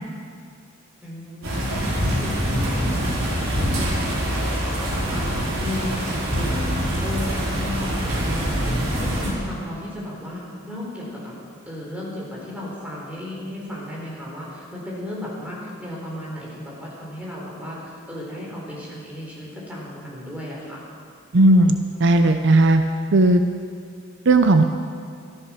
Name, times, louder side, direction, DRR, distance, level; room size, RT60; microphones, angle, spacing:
voice 1, 1.0-11.3 11.7-17.8 18.1-20.8, left 1 dB, 5° right, -5 dB, 4.3 m, -34 dB
sound 1, 1.4-9.3, equal, 90° right, 5.0 m, -24 dB
voice 2, 21.3-22.8 23.1-23.4 24.3-24.6, right 2 dB, 65° right, 7 dB, 0.7 m, -15 dB
14.0 x 13.5 x 6.2 m, 2.2 s
head